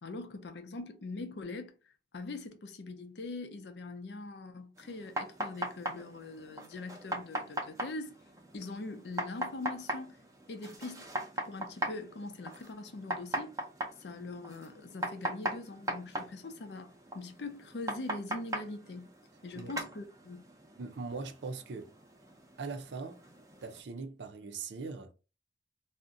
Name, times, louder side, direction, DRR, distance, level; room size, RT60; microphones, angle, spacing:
voice 1, 0.0-8.2 8.5-10.2 10.5-11.1 11.4-13.5 14.0-19.1 19.4-20.4, left 3 dB, 75° left, 0.5 m, -42 dB
sound 1, 4.8-23.8, right 1 dB, 20° right, 0.5 m, -40 dB
voice 2, 20.8-21.9 22.6-23.2 23.6-25.1, right 4 dB, 80° right, 0.5 m, -40 dB
2.6 x 2.1 x 3.6 m
head